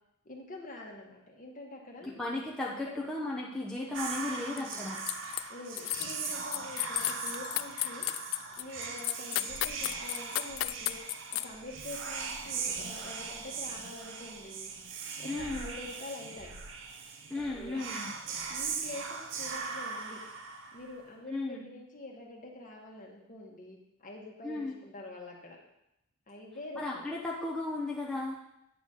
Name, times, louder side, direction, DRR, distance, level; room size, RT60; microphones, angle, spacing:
voice 1, 0.2-2.2 2.8-3.1 4.4-4.8 5.5-8.0 8.6-11.0 11.3-14.7 15.2-16.5 17.5-17.8 18.5-20.2 20.7-25.6 26.3-27.1, left 2 dB, 40° left, -1 dB, 1.5 m, -46 dB
voice 2, 2.0-5.0 15.2-15.7 17.3-18.1 21.3-21.7 24.4-24.8 26.8-28.3, left 2 dB, 5° left, -5 dB, 0.9 m, -35 dB
Whispering, 3.9-21.1, right 5 dB, 60° right, 0.8 m, -39 dB
sound 1, 4.6-5.4 5.7-11.5, left 16 dB, 65° left, 0.3 m, -33 dB
9.1 x 4.2 x 6.4 m, 0.85 s
head